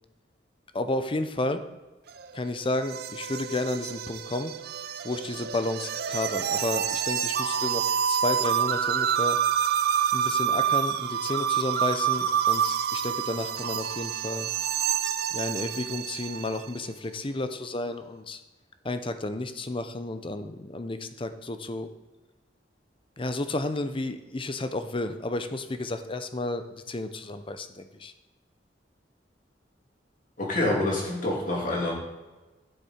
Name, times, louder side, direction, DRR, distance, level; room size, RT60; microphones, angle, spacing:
voice 1, 0.7-1.6 2.3-4.5 5.0-9.4 10.1-14.5 15.3-18.4 18.8-21.9 23.2-28.1, left 2 dB, 30° left, 9 dB, 0.7 m, -32 dB
sound 1, 2.1-16.7, right 8 dB, 60° right, 0.5 m, -28 dB
voice 2, 30.4-31.9, left 1 dB, 50° left, -3 dB, 2.9 m, -26 dB
11.5 x 6.7 x 4.4 m, 1.2 s
head